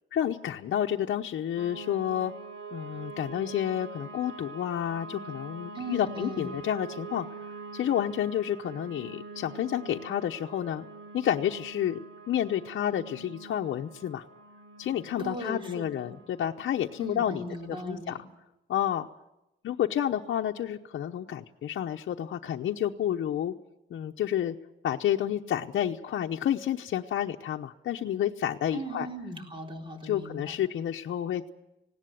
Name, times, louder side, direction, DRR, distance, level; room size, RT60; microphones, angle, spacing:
voice 1, 0.1-2.3 2.7-7.3 7.7-10.9 11.1-12.0 12.3-14.2 14.8-17.4 17.9-18.2 18.7-19.1 19.6-23.5 23.9-24.5 24.8-29.1 30.0-31.5, left 10 dB, 65° left, 2 dB, 0.9 m, -30 dB
sound 1, 1.6-17.8, right 4 dB, 90° right, 4.0 m, -45 dB
voice 2, 5.7-6.6 15.2-16.1 17.0-18.2 28.7-30.6, right 1 dB, 25° right, 3 dB, 3.9 m, -38 dB
19.0 x 17.5 x 9.2 m, 0.91 s
cardioid pair, 135°, 21 cm